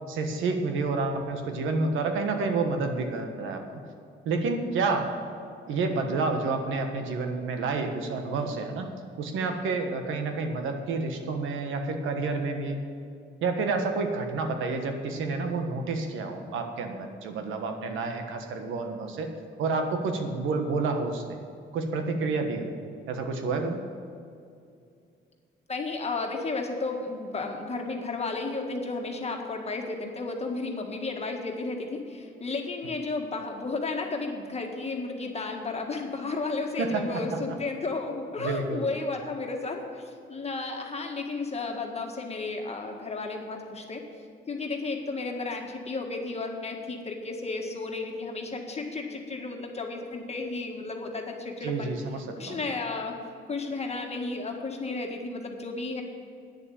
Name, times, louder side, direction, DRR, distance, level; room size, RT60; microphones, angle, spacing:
voice 1, 0.1-3.6 4.2-5.1 5.7-8.9 9.2-12.8 13.4-19.3 19.6-21.4 21.7-22.7 23.1-23.8 36.8-37.0 37.3-37.4 38.4-38.9 51.6-52.6, right 3 dB, 85° right, 5 dB, 1.4 m, -29 dB
voice 2, 25.7-44.0 44.5-51.9 52.4-53.2 53.5-56.0, left 3 dB, 30° left, 2 dB, 1.7 m, -33 dB
9.9 x 7.0 x 8.9 m, 2.4 s
cardioid pair, 90°, 20 cm